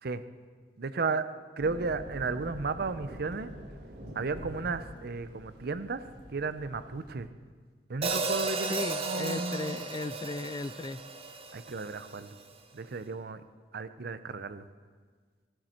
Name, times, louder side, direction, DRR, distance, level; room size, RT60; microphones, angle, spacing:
voice 1, 0.8-1.3 1.6-3.5 4.2-6.0 6.3-7.3 7.9-8.8 9.0-9.8 11.5-12.4 12.7-13.4 13.7-14.7, right 4 dB, 60° right, 12 dB, 0.6 m, -34 dB
sound 1, 1.6-7.2, equal, 80° right, 3.1 m, -45 dB
Hi-hat, 8.0-12.2, right 3 dB, 35° right, 1.0 m, -34 dB
voice 2, 8.7-11.0, left 3 dB, 25° left, 14 dB, 0.4 m, -36 dB
16.0 x 12.0 x 4.4 m, 1.6 s
head